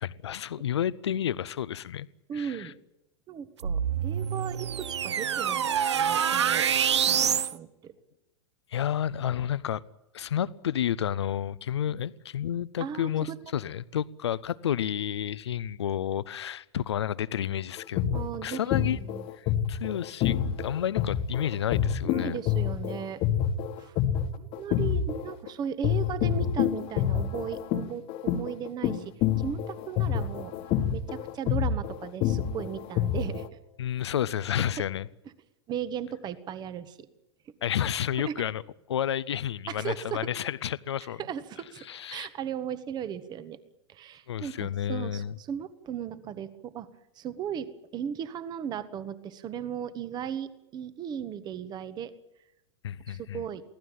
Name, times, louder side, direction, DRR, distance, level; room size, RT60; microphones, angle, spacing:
voice 1, 0.0-2.1 2.3-2.7 8.7-9.8 10.1-18.2 18.4-19.0 19.4-22.4 33.8-35.1 37.6-38.6 38.9-41.2 41.8-42.3 44.3-45.4 52.8-53.4, left 10 dB, 65° left, 0.9 m, -31 dB
voice 2, 2.3-2.7 3.3-7.9 11.9-12.0 12.8-13.4 18.1-19.3 22.1-23.2 23.8-24.0 24.4-30.5 30.9-33.4 35.7-37.1 38.2-38.3 39.7-40.2 41.2-43.6 43.9-46.9 47.2-52.1 53.1-53.6, right 8 dB, 30° right, 1.6 m, -37 dB
sound 1, 3.6-7.5, right 8 dB, 70° right, 0.8 m, -26 dB
sound 2, 17.8-25.5 25.8-33.5, left 9 dB, 35° left, 1.7 m, -27 dB
23.5 x 17.0 x 9.1 m
figure-of-eight pair, 95°, 15 cm